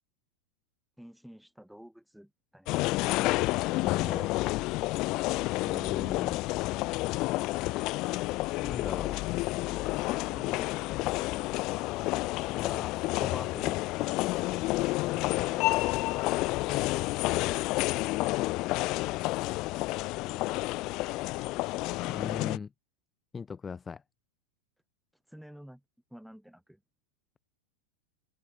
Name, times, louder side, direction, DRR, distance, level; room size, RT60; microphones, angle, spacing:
voice 1, 1.0-2.7 10.1-11.4 15.1-17.2 22.0-22.6 25.3-25.8 26.1-26.8, equal, ahead, 6.7 m, -51 dB
sound 1, 2.7-22.6, left 21 dB, 40° left, 0.7 m, -30 dB
voice 2, 3.8-4.3 5.6-6.4 8.6-9.2 12.5-14.2 22.1-22.7 23.3-24.0, left 5 dB, 15° left, 1.3 m, -39 dB
figure-of-eight pair, 90°, 0 cm